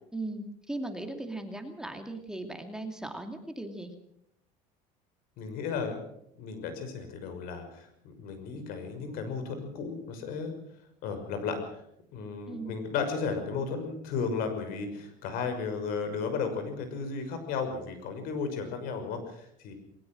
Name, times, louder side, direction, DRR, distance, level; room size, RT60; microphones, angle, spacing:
voice 1, 0.1-3.9 12.5-12.8, right 2 dB, 5° right, 5 dB, 2.6 m, -38 dB
voice 2, 5.4-6.0 6.4-10.5 11.0-11.8 12.1-19.7, left 5 dB, 70° left, 8 dB, 6.0 m, -34 dB
21.5 x 19.5 x 6.3 m, 0.73 s
cardioid pair, 115°, 16 cm